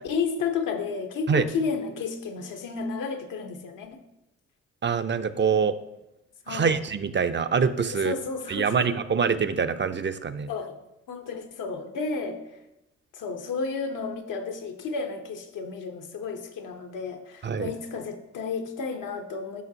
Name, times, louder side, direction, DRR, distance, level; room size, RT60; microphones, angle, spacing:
voice 1, 0.0-4.0 6.5-6.8 7.9-8.9 10.5-10.8 11.1-12.4 13.1-19.6, left 5 dB, 75° left, 4 dB, 1.2 m, -32 dB
voice 2, 4.8-5.7 6.5-8.1 8.5-10.5 17.4-17.7, right 6 dB, 35° right, 10 dB, 0.6 m, -25 dB
11.0 x 6.0 x 2.9 m, 0.90 s
supercardioid pair, 55°, 32 cm